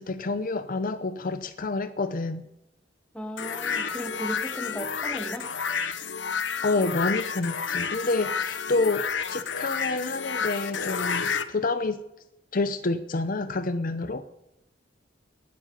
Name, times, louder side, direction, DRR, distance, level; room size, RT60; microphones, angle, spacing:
voice 1, 0.0-2.5 6.6-12.0 12.5-14.2, left 3 dB, 50° left, 11 dB, 0.7 m, -28 dB
voice 2, 3.1-5.5, equal, 5° left, 4 dB, 2.0 m, -36 dB
sound 1, 3.4-11.4, left 6 dB, 85° left, 1.1 m, -30 dB
19.0 x 7.4 x 9.9 m, 0.89 s
head